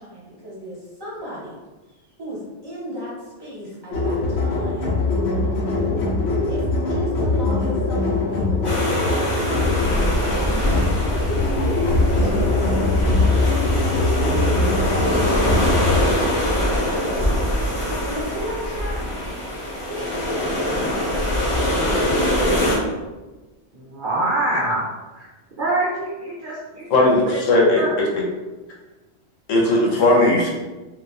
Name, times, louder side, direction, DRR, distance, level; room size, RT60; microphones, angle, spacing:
voice 1, 0.0-1.6 1.9-5.0 5.7-6.1 6.5-8.6 9.0-10.1 10.4-10.8 11.3-17.4 17.7-19.2 19.7-20.1, equal, 20° right, -8 dB, 1.1 m, -35 dB
sound 1, 3.9-16.1, left 2 dB, 65° left, 1.0 m, -22 dB
sound 2, 8.6-22.8, equal, 35° left, 0.6 m, -23 dB
voice 2, 23.7-25.3 25.6-27.4 27.7-28.0, right 2 dB, 55° right, -5 dB, 0.6 m, -25 dB
voice 3, 26.9-28.1 29.5-30.5, left 2 dB, 90° left, -1 dB, 1.1 m, -17 dB
2.6 x 2.6 x 3.2 m, 1.2 s
omnidirectional pair, 1.3 m